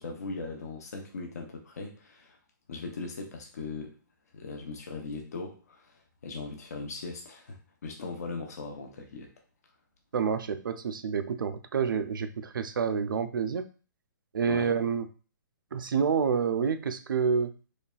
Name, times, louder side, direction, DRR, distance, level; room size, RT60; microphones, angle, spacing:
voice 1, 0.0-2.4 2.7-4.0 4.3-9.3 14.5-14.7, left 3 dB, 50° left, 2 dB, 0.7 m, -39 dB
voice 2, 10.1-13.7 14.3-15.1 15.7-17.5, right 6 dB, 85° right, 9 dB, 0.5 m, -28 dB
4.1 x 3.1 x 2.3 m, 0.36 s
hypercardioid pair, 175°, 11 cm